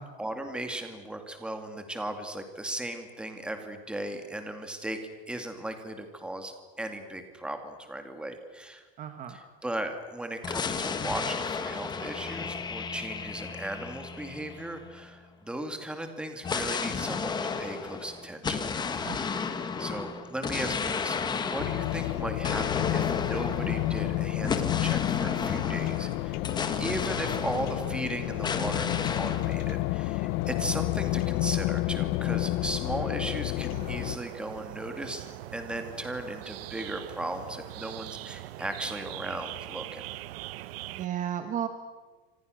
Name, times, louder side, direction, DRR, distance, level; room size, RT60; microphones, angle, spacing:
voice 1, 0.2-5.0 5.3-8.8 9.3-19.2 19.8-26.5 26.8-35.2 35.5-40.1, right 1 dB, 5° right, 6 dB, 2.3 m, -37 dB
voice 2, 9.0-9.4 19.0-19.5 40.9-41.7, right 10 dB, 25° right, 7 dB, 1.5 m, -34 dB
sound 1, 10.4-15.1 16.4-28.1 28.4-29.5, left 5 dB, 15° left, 1.6 m, -33 dB
sound 2, 21.6-34.2, left 18 dB, 40° left, 0.7 m, -30 dB
sound 3, 33.7-41.1, right 16 dB, 70° right, 1.1 m, -42 dB
29.5 x 26.5 x 6.5 m, 1.3 s
supercardioid pair, 180°, 30 cm